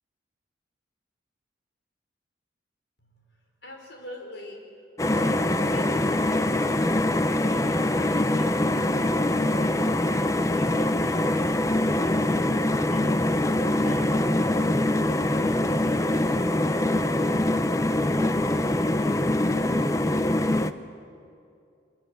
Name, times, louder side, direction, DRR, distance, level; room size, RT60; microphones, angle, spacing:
voice 1, 3.6-4.6 5.0-9.8 10.4-12.3 12.8-13.3 13.5-16.4, left 1 dB, 65° left, 2 dB, 4.6 m, -44 dB
sound 1, 5.0-20.7, left 1 dB, 15° left, 0.6 m, -23 dB
24.0 x 22.5 x 7.8 m, 2.5 s
head